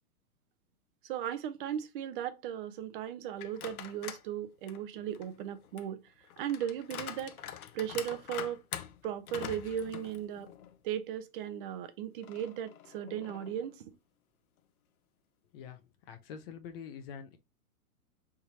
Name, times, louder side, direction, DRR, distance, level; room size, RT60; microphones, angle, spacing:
voice 1, 1.0-6.0 6.4-7.3 7.7-8.6 9.0-10.5 10.8-13.9, right 10 dB, 35° right, 0.7 m, -37 dB
sound 1, 3.4-4.3 4.7-10.8 11.2-11.3 12.2-13.7, left 10 dB, 75° left, 0.8 m, -45 dB
voice 2, 16.1-17.4, left 7 dB, 40° left, 0.8 m, -45 dB
4.5 x 3.6 x 2.8 m
hypercardioid pair, 145°, 44 cm